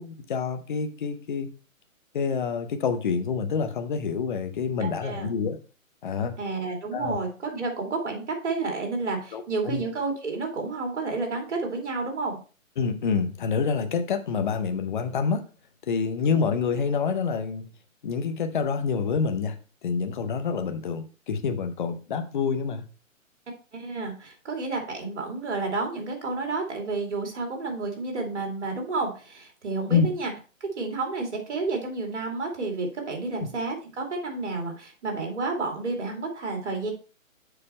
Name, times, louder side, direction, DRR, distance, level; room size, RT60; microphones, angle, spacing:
voice 1, 0.0-1.5 2.1-5.6 6.0-6.3 6.9-7.2 9.3-9.8 12.8-15.5 15.9-17.6 18.0-19.6 19.8-22.8 29.9-30.1 33.4-33.5, left 5 dB, 35° left, 8 dB, 0.9 m, -27 dB
voice 2, 4.8-5.3 6.4-12.4 23.7-30.3 30.6-36.9, right 3 dB, 55° right, 3 dB, 2.6 m, -30 dB
7.0 x 4.9 x 4.3 m, 0.35 s
hypercardioid pair, 155°, 41 cm